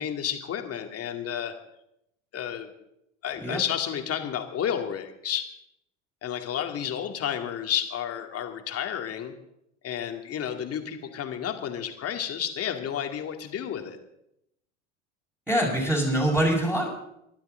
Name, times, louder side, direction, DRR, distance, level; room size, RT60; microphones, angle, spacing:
voice 1, 0.0-1.5 2.3-2.7 3.2-5.5 6.2-9.3 9.8-14.0, left 9 dB, 40° left, 5 dB, 2.4 m, -31 dB
voice 2, 15.5-16.9, right 1 dB, 5° right, -6 dB, 5.8 m, -24 dB
24.0 x 11.5 x 3.9 m, 0.80 s
hypercardioid pair, 80°, 37 cm